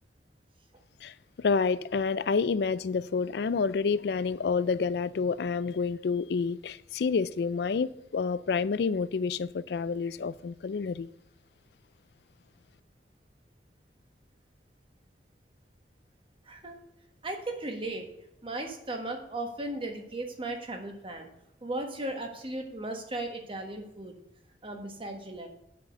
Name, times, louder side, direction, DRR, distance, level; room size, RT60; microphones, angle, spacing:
voice 1, 1.4-11.1, left 5 dB, 65° left, 0.4 m, -28 dB
voice 2, 16.5-16.8 17.2-18.1 18.4-21.3 21.6-24.1 24.6-25.5, right 2 dB, 30° right, 1.3 m, -36 dB
7.3 x 6.0 x 6.3 m
head